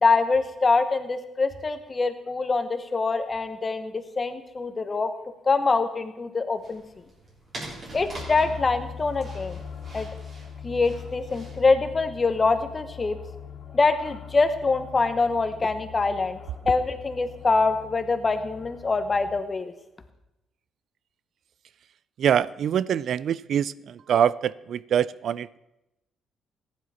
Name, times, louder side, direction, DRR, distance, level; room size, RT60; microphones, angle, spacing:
voice 1, 0.0-5.1 5.5-6.8 7.9-9.6 9.9-10.1 10.6-13.2 13.7-16.4 16.6-19.7, left 3 dB, 30° left, 9 dB, 1.2 m, -24 dB
sound 1, 6.6-11.7, right 1 dB, 40° right, 3.8 m, -43 dB
sound 2, 8.2-19.4, left 7 dB, 60° left, 2.4 m, -41 dB
voice 2, 22.2-25.6, right 9 dB, 65° right, 20 dB, 0.3 m, -24 dB
15.0 x 10.0 x 4.3 m, 0.92 s
cardioid pair, 90°, 0 cm